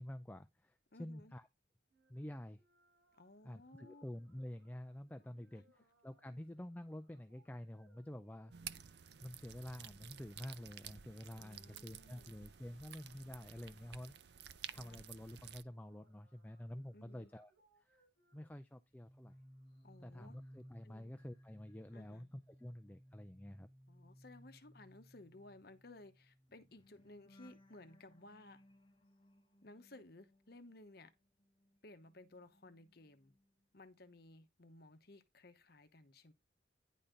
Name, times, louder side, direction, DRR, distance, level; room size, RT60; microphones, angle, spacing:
voice 1, 0.0-1.5 2.1-2.6 3.4-14.2 14.7-17.5 18.3-19.3 20.0-23.7, left 1 dB, 10° left, 0.4 m, -49 dB
voice 2, 0.9-1.4 3.2-4.0 5.5-5.7 6.3-6.4 11.4-12.4 14.6-15.0 16.9-17.3 19.8-20.4 20.8-21.1 21.9-22.3 23.9-28.6 29.6-31.1 31.8-33.3 33.7-36.3, left 2 dB, 55° left, 1.0 m, -58 dB
sound 1, 1.9-18.5, right 1 dB, 85° right, 3.9 m, -76 dB
sound 2, 8.5-15.6, right 9 dB, 60° right, 0.5 m, -53 dB
sound 3, 18.8-31.1 31.4-33.5 33.8-34.1, equal, 25° left, 1.4 m, -62 dB
10.0 x 4.2 x 5.1 m
head